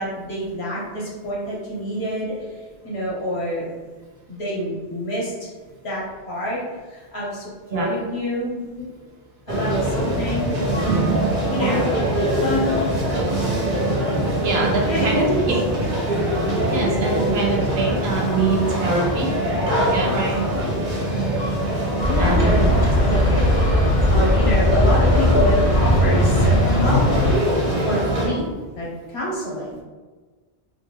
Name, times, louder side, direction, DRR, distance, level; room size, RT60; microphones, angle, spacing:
voice 1, 0.0-3.7 4.3-5.5 5.8-6.6 6.9-8.5 9.5-10.5 10.8-11.2 11.5-12.7 14.8-15.9 22.0-23.8 24.1-27.5 27.8-28.5 28.7-29.8, equal, 85° left, -5 dB, 1.3 m, -27 dB
sound 1, 9.5-28.3, right 1 dB, 50° right, 1.1 m, -23 dB
voice 2, 14.4-15.2 16.7-19.3 19.9-20.3 22.2-22.5, right 3 dB, 75° right, -2 dB, 1.1 m, -24 dB
sound 2, 22.0-27.3, left 1 dB, 45° left, 0.5 m, -18 dB
3.8 x 2.2 x 3.3 m, 1.3 s
omnidirectional pair, 1.1 m